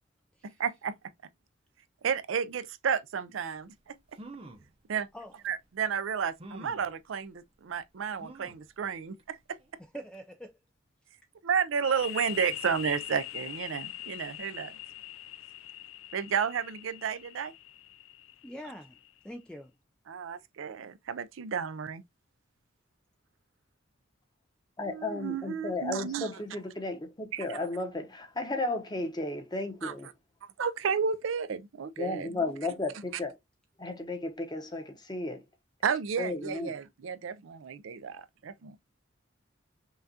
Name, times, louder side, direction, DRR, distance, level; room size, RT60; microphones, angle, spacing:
voice 1, 0.4-0.9 2.0-4.0 4.9-5.1 5.4-9.4 11.4-14.8 16.1-17.5 20.1-22.0 24.9-26.3 27.3-27.4 29.8-29.9 30.6-32.3 35.8-38.8, right 6 dB, 80° right, 0.4 m, -32 dB
sound 1, 3.7-3.8 4.1-4.7 5.4-5.5 6.4-6.9 8.2-8.7 9.2-9.3 9.6-9.7, right 2 dB, 30° right, 0.6 m, -47 dB
voice 2, 9.8-10.5 18.4-19.0 19.2-19.7, equal, 5° left, 0.3 m, -44 dB
sound 2, 11.8-19.3, left 14 dB, 90° left, 0.3 m, -43 dB
voice 3, 24.8-30.1 32.0-33.4 33.8-35.4 36.2-36.8, left 2 dB, 20° left, 0.9 m, -34 dB
5.6 x 2.4 x 2.7 m
head